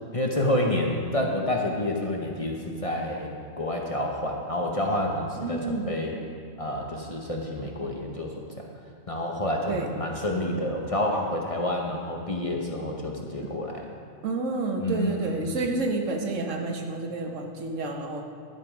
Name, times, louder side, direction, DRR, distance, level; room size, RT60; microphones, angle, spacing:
voice 1, 0.1-6.2 6.6-8.7 9.1-14.0 14.8-15.6, left 1 dB, 30° left, 0 dB, 0.9 m, -29 dB
voice 2, 5.4-5.9 9.7-9.9 13.4-13.5 14.2-18.2, right 3 dB, 80° right, 3 dB, 1.3 m, -29 dB
12.0 x 7.3 x 4.9 m, 2.2 s
omnidirectional pair, 1.3 m